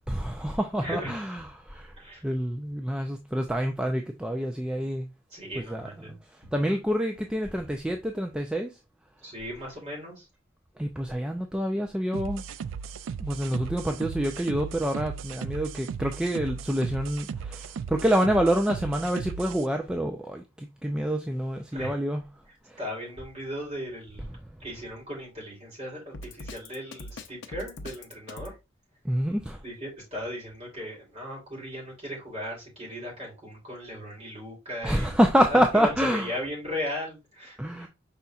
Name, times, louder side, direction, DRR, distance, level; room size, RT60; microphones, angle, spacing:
voice 1, 0.1-1.9 2.2-5.1 5.6-6.2 6.5-8.7 10.8-12.4 13.2-22.2 22.7-22.8 29.0-29.6 34.8-36.3 37.6-37.9, equal, 5° right, 0.3 m, -27 dB
voice 2, 0.8-1.1 2.0-2.2 5.3-6.1 9.2-10.2 21.7-21.9 22.8-24.3 24.6-28.5 29.6-35.1 35.5-37.9, equal, 35° right, 3.2 m, -37 dB
sound 1, 12.1-19.7, right 6 dB, 85° right, 0.3 m, -36 dB
Drum kit, 26.1-28.6, left 2 dB, 65° left, 0.6 m, -41 dB
5.6 x 4.0 x 2.3 m
head